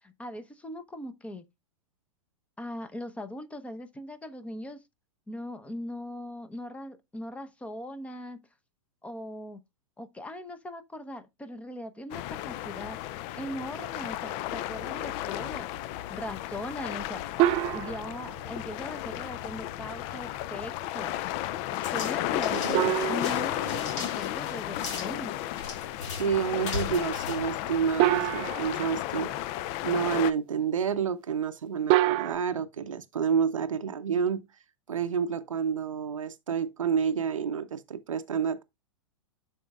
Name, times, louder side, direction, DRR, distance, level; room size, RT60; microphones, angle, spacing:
voice 1, 0.0-1.4 2.6-4.8 5.3-8.5 9.0-9.6 10.0-13.0 13.4-15.7 16.1-17.2 17.7-21.1 21.8-25.4, left 1 dB, 10° left, 0.8 m, -40 dB
sound 1, 12.1-30.3, left 14 dB, 40° left, 0.4 m, -34 dB
sound 2, 17.4-18.5 22.7-24.3 28.0-29.2 31.9-32.4, right 15 dB, 35° right, 0.4 m, -26 dB
sound 3, 21.7-28.3, left 5 dB, 65° left, 2.1 m, -39 dB
voice 2, 22.5-23.0 26.2-29.3 29.8-34.4 34.9-38.6, right 7 dB, 85° right, 0.6 m, -29 dB
12.0 x 4.2 x 2.3 m
hypercardioid pair, 110°, 16 cm